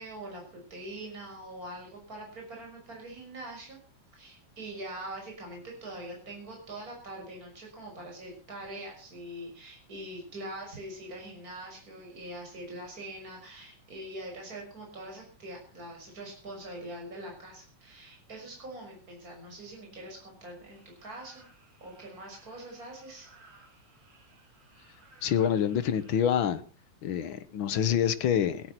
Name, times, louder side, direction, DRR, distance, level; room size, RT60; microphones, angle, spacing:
voice 1, 0.0-3.8 4.1-21.4 21.8-23.3, right 1 dB, 30° right, 6.7 m, -43 dB
sound 1, 20.7-26.2, right 3 dB, 70° right, 5.1 m, -59 dB
voice 2, 25.2-26.6 27.0-28.7, left 9 dB, 65° left, 1.3 m, -26 dB
17.0 x 11.5 x 6.0 m
omnidirectional pair, 3.3 m